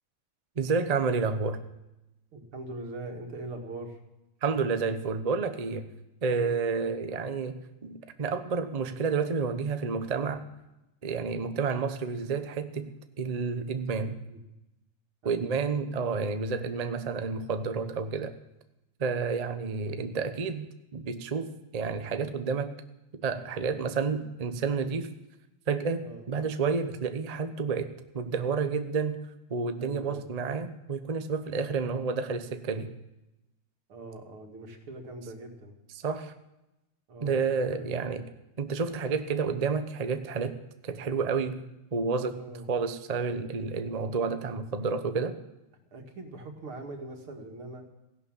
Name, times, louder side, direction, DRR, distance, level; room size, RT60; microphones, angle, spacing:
voice 1, 0.6-1.6 4.4-5.9 6.2-10.5 11.0-14.2 15.2-18.3 19.0-22.8 23.1-25.1 25.7-29.2 29.5-32.9 36.0-36.3 37.2-38.2 38.6-41.6 41.9-42.4 42.7-45.4, right 5 dB, 60° right, 9 dB, 0.4 m, -30 dB
voice 2, 2.3-4.0 6.8-7.0 14.3-14.4 15.2-15.6 26.0-26.2 29.8-30.2 33.9-35.7 37.1-37.9 42.4-42.7 45.9-47.9, right 2 dB, 80° right, 3 dB, 2.9 m, -42 dB
16.0 x 11.5 x 7.3 m, 0.94 s
omnidirectional pair, 2.3 m